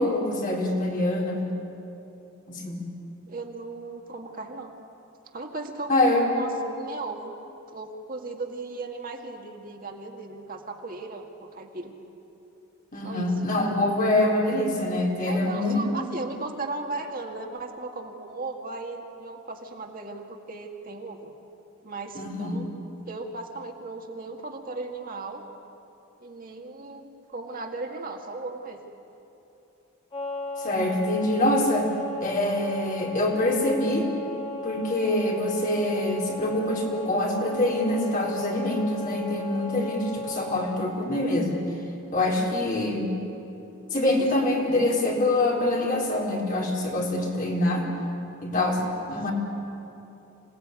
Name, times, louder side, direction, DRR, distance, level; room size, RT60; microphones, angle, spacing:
voice 1, 0.0-1.5 2.5-2.9 5.9-6.3 12.9-15.9 22.1-22.6 30.6-31.9 32.2-34.1 34.6-41.6 42.1-43.1 43.9-47.9 48.4-48.8 49.1-49.3, left 1 dB, 40° left, -1 dB, 4.1 m, -25 dB
voice 2, 3.3-4.7 5.3-7.3 7.7-11.9 13.0-13.3 15.2-21.3 21.8-22.7 23.1-25.4 26.2-28.8 44.1-44.6, right 3 dB, 45° right, 2 dB, 1.9 m, -36 dB
sound 1, 30.1-40.9, left 2 dB, 25° left, 3.1 m, -35 dB
26.5 x 18.0 x 9.7 m, 3.0 s
head